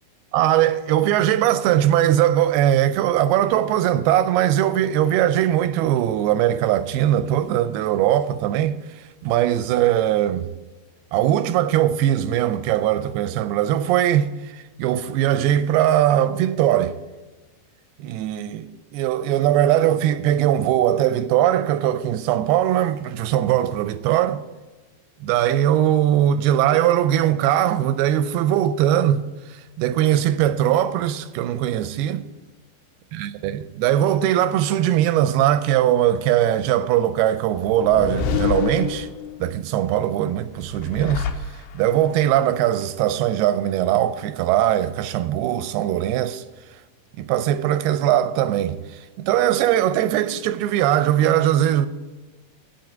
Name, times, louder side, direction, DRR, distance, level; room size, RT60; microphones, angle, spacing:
voice 1, 0.3-10.5 11.1-17.0 18.0-24.4 25.2-29.2 29.5-32.2 33.1-39.1 39.4-41.3 41.7-46.4 47.2-51.9, right 11 dB, 85° right, 2.4 m, -20 dB
sound 1, 37.5-39.5 40.6-42.1, left 6 dB, 85° left, 2.9 m, -27 dB
8.9 x 7.9 x 8.0 m
omnidirectional pair, 4.7 m